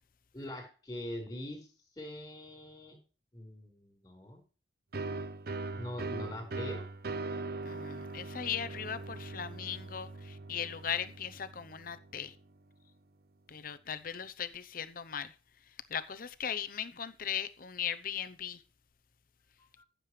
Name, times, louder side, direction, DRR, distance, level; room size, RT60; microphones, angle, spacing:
voice 1, 0.3-1.7 1.9-3.0 3.3-4.4 5.7-6.8 19.8-19.9, left 1 dB, 20° left, 4.9 m, -43 dB
sound 1, 4.9-12.4, right 3 dB, 55° right, 0.6 m, -40 dB
voice 2, 7.6-12.3 13.5-15.3 15.9-18.6, left 8 dB, 50° left, 0.8 m, -38 dB
14.5 x 7.6 x 3.3 m
head